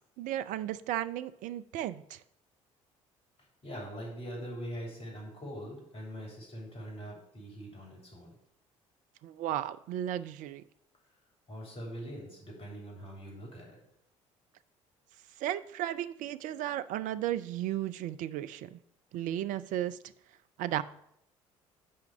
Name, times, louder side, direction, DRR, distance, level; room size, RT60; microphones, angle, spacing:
voice 1, 0.2-2.2 9.2-10.6 15.4-18.8 19.1-20.0 20.6-20.8, right 12 dB, 50° right, 14 dB, 0.4 m, -34 dB
voice 2, 3.6-8.3 11.5-13.8, equal, 35° left, -1 dB, 3.5 m, -42 dB
5.6 x 5.1 x 6.7 m, 0.75 s
figure-of-eight pair, 55°, 17 cm